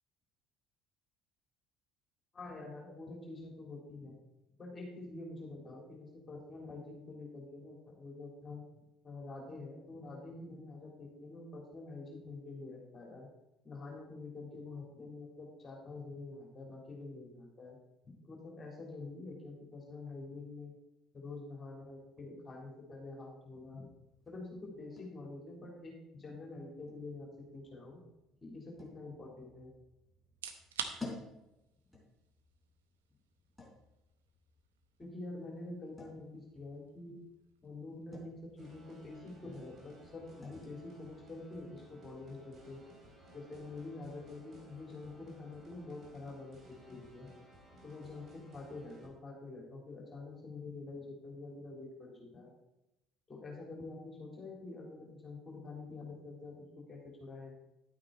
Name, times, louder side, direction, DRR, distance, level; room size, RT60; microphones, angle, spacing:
voice 1, 2.3-4.2 4.6-8.6 9.0-13.3 13.6-17.8 18.2-20.7 21.1-23.9 24.3-28.0 28.4-29.7 35.0-37.1 37.6-42.8 43.3-47.3 47.8-52.5 53.3-57.5, left 3 dB, 25° left, -1 dB, 3.5 m, -47 dB
sound 1, 23.5-43.1, left 2 dB, ahead, 3.7 m, -56 dB
sound 2, 30.3-45.1, right 7 dB, 75° right, 0.8 m, -53 dB
sound 3, 38.6-49.1, right 1 dB, 40° right, 3.0 m, -59 dB
11.0 x 8.9 x 4.1 m, 0.93 s
figure-of-eight pair, 55°, 0 cm